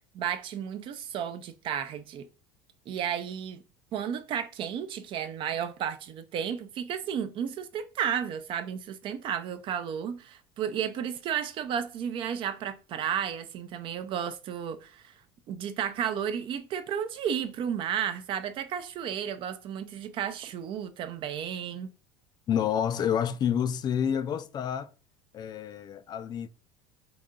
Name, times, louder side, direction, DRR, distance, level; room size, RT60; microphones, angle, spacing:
voice 1, 0.1-2.3 2.9-3.6 3.9-15.1 15.5-21.9, right 8 dB, 50° right, 0.5 m, -33 dB
voice 2, 22.5-24.9 25.3-26.5, left 8 dB, 40° left, 0.4 m, -28 dB
3.9 x 2.7 x 3.7 m
hypercardioid pair, 90°, 11 cm